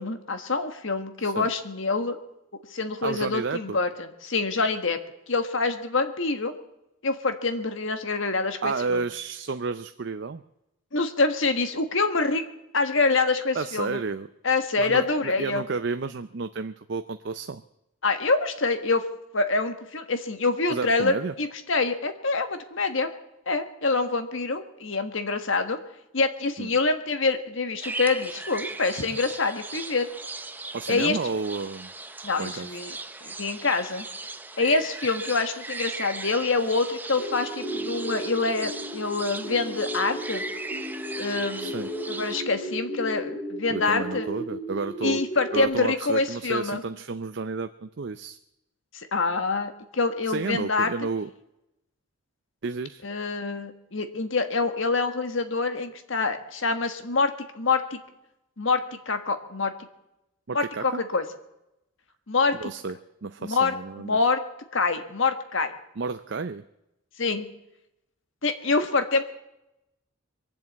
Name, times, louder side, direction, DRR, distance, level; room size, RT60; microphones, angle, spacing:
voice 1, 0.0-2.2 2.7-3.9 4.2-5.0 5.3-6.5 7.0-9.0 10.9-12.4 12.7-14.0 14.4-15.6 18.0-19.0 19.3-23.1 23.5-25.8 26.1-30.1 30.9-31.2 32.2-34.1 34.6-40.4 41.2-41.7 42.1-44.3 45.0-46.8 48.9-50.9 53.0-58.0 58.6-59.7 60.5-61.2 62.3-62.7 63.4-63.7 64.0-64.4 64.7-65.7 67.2-67.5 68.4-69.2, left 3 dB, 65° left, 8 dB, 1.4 m, -26 dB
voice 2, 3.0-3.8 8.6-10.4 13.5-14.3 14.8-17.6 20.7-21.3 26.6-26.7 30.7-31.9 32.4-32.7 41.6-41.9 43.7-45.2 45.5-48.4 50.3-51.3 52.6-53.0 60.5-61.0 62.5-63.0 63.2-64.2 66.0-66.6, right 4 dB, 55° right, 10 dB, 0.5 m, -31 dB
sound 1, 27.8-42.4, right 2 dB, 10° right, 0.6 m, -38 dB
sound 2, 37.2-45.6, right 1 dB, 20° left, 3.8 m, -35 dB
22.5 x 7.7 x 8.4 m, 0.88 s
head